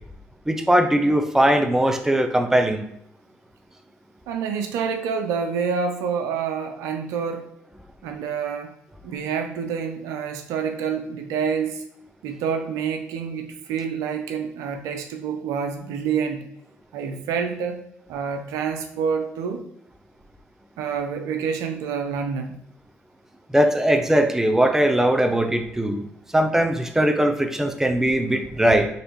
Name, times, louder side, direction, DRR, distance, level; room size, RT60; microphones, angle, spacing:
voice 1, 0.5-2.8 23.5-26.0 26.3-28.9, right 1 dB, 10° right, 5 dB, 0.6 m, -20 dB
voice 2, 4.3-7.5 8.0-8.7 9.0-11.8 12.2-16.4 16.9-17.8 18.1-19.6 20.8-22.6, right 6 dB, 80° right, 5 dB, 0.5 m, -27 dB
4.0 x 3.2 x 3.1 m, 0.75 s
hypercardioid pair, 55°, 6 cm